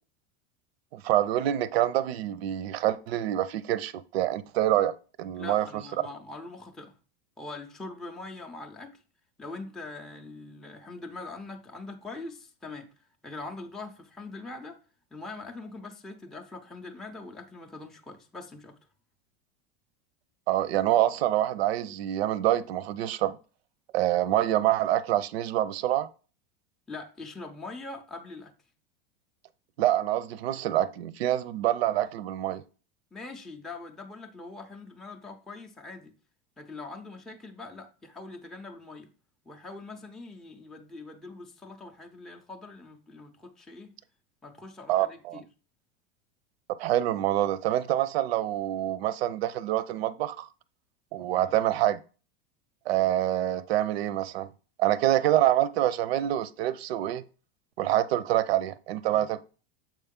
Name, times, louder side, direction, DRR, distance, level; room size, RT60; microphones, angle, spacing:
voice 1, 0.9-5.8 20.5-23.4 23.9-26.1 29.8-32.6 44.9-45.4 46.8-50.5 51.1-52.0 52.9-54.5 54.8-57.2 57.8-59.4, right 13 dB, 90° right, 0.6 m, -26 dB
voice 2, 5.3-6.9 7.4-9.0 9.4-12.9 13.2-14.8 15.1-18.8 26.9-28.5 33.1-36.1 36.6-39.1 39.5-43.9 44.4-45.5 51.4-51.6 59.1-59.3, left 3 dB, ahead, 0.4 m, -42 dB
7.4 x 4.5 x 3.6 m
supercardioid pair, 140°, 30 cm